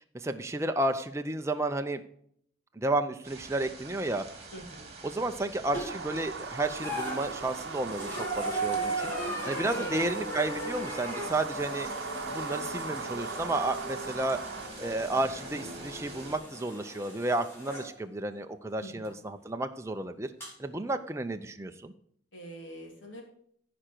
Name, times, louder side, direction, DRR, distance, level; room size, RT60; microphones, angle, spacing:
voice 1, 0.1-2.0 2.8-4.2 5.0-9.1 9.5-11.9 12.3-14.4 14.8-20.3 20.6-21.9, right 2 dB, 15° right, 6 dB, 0.6 m, -32 dB
sound 1, 3.2-16.4, right 3 dB, 35° right, 2.3 m, -46 dB
voice 2, 4.5-4.9 9.7-10.0 18.8-19.1 22.3-23.2, equal, 85° left, 1 dB, 3.0 m, -44 dB
sound 2, 5.7-6.2 6.7-17.9 19.0-19.1 20.4-20.5, right 1 dB, 15° left, 3.7 m, -37 dB
sound 3, 5.9-14.7, right 5 dB, 65° right, 0.8 m, -40 dB
14.5 x 5.1 x 4.5 m, 0.64 s
head